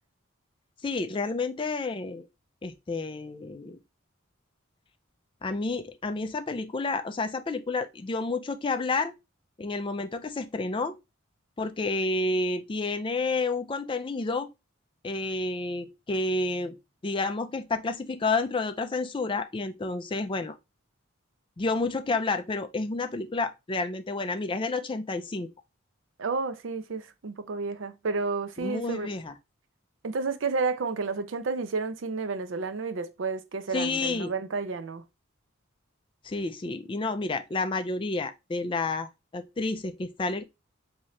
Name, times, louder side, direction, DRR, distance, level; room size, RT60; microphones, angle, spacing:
voice 1, 0.8-2.2 2.6-3.8 5.4-9.1 9.6-11.0 11.6-14.5 15.0-16.8 17.0-20.6 21.6-25.5 28.6-29.2 33.7-34.3 36.2-40.4, left 3 dB, 25° left, 0.4 m, -30 dB
voice 2, 26.2-29.1 30.0-35.0, right 4 dB, 65° right, 0.5 m, -31 dB
3.7 x 2.7 x 3.2 m
head